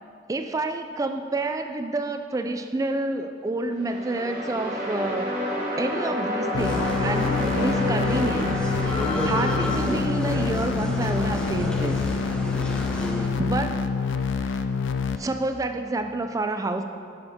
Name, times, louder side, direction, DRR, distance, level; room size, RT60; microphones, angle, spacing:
voice 1, 0.3-5.3 5.8-12.0 13.1-13.8 14.3-14.6 15.2-16.8, right 2 dB, 20° right, 7 dB, 0.3 m, -29 dB
sound 1, 3.7-10.7, left 1 dB, 45° right, 2.1 m, -30 dB
sound 2, 6.5-15.2, left 5 dB, 90° left, 0.5 m, -27 dB
sound 3, 6.6-13.3, left 1 dB, 5° left, 0.8 m, -31 dB
10.5 x 6.6 x 4.2 m, 2.4 s
head